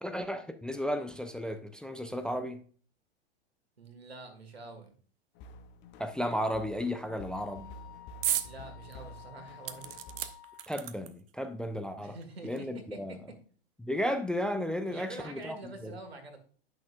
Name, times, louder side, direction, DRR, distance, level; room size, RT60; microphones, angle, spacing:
voice 1, 0.0-2.6 6.0-7.7 10.7-12.2 12.4-13.2 13.8-15.6 15.8-16.0, equal, 5° left, 0.5 m, -34 dB
voice 2, 3.8-5.0 8.4-10.0 12.0-13.4 14.9-16.4, right 2 dB, 85° right, 1.8 m, -46 dB
sound 1, 5.4-10.3, left 1 dB, 35° left, 0.8 m, -50 dB
Wind instrument woodwind instrument, 6.4-10.7, left 11 dB, 55° left, 1.2 m, -53 dB
sound 2, 8.2-8.5 8.9-9.0 9.7-11.3 12.2-12.3 12.6-12.7, right 11 dB, 65° right, 0.8 m, -34 dB
11.0 x 6.2 x 2.5 m
hypercardioid pair, 100°, 30 cm